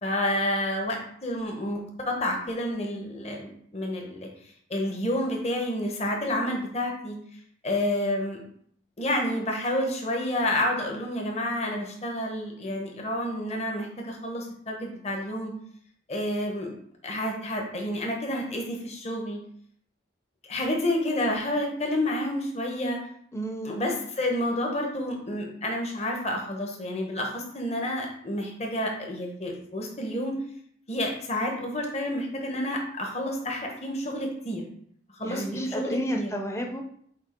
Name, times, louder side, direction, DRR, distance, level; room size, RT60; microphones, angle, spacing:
voice 1, 0.0-4.3 4.7-7.2 7.6-8.4 9.0-15.5 16.1-16.7 17.0-19.4 20.5-23.0 23.6-30.3 30.9-34.6 35.2-36.3, left 1 dB, 35° left, 1 dB, 1.1 m, -29 dB
voice 2, 23.3-23.8 35.2-36.8, equal, 15° left, 3 dB, 0.7 m, -31 dB
8.0 x 2.9 x 4.4 m, 0.64 s
head